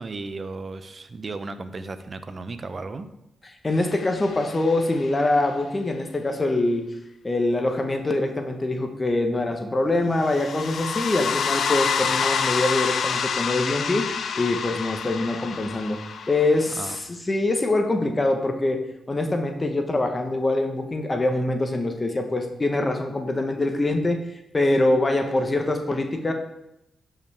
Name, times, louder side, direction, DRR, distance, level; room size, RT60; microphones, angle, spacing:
voice 1, 0.0-3.1 16.8-17.0, right 3 dB, 45° right, 10 dB, 0.8 m, -35 dB
voice 2, 3.6-6.8 7.2-14.0 14.4-16.0 16.3-18.8 19.1-26.3, left 2 dB, 30° left, 4 dB, 1.3 m, -24 dB
sound 1, 3.9-5.0 10.2-17.0, left 6 dB, 70° left, 0.7 m, -28 dB
11.5 x 5.7 x 3.6 m, 0.84 s
supercardioid pair, 55°, 0 cm